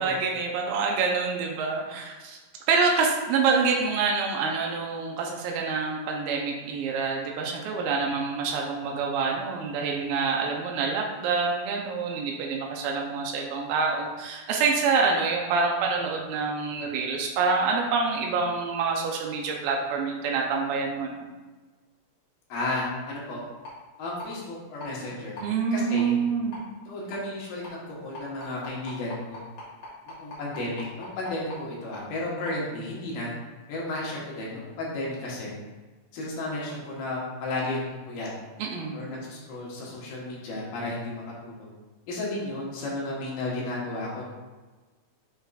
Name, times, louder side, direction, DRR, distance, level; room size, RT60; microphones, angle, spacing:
voice 1, 0.0-2.4 2.7-21.3 25.4-26.6 38.6-39.0, right 4 dB, 90° right, 0 dB, 2.4 m, -26 dB
voice 2, 22.5-23.4 24.0-25.4 25.7-26.1 26.9-29.4 30.1-33.3 33.7-35.5 36.1-38.3 38.9-41.7 42.1-44.2, left 2 dB, 85° left, -5 dB, 3.1 m, -33 dB
sound 1, 23.6-23.7 24.2-24.3 24.8-24.9 25.4-25.5 26.0-26.1 26.5-26.6 27.1-27.2 27.6-27.7 28.1-31.6 31.9-32.0 32.5-32.6, left 2 dB, 50° left, 2.8 m, -40 dB
7.2 x 5.5 x 2.5 m, 1.3 s
omnidirectional pair, 4.1 m